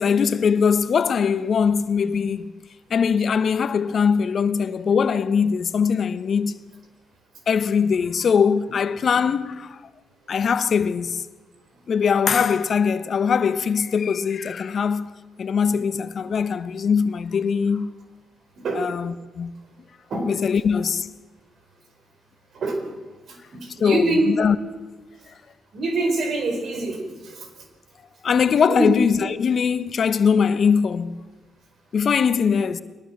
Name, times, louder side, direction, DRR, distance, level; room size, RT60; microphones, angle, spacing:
voice 1, 0.0-2.5 2.9-6.6 7.5-9.8 10.3-11.2 11.9-17.9 18.7-19.5 20.2-21.1 23.8-24.6 28.2-31.2 31.9-32.8, left 6 dB, 55° left, 1.1 m, -21 dB
voice 2, 23.5-24.3 25.7-27.5 28.7-28.9, right 2 dB, 60° right, 4.6 m, -24 dB
21.5 x 19.5 x 7.5 m
supercardioid pair, 60°, 0 cm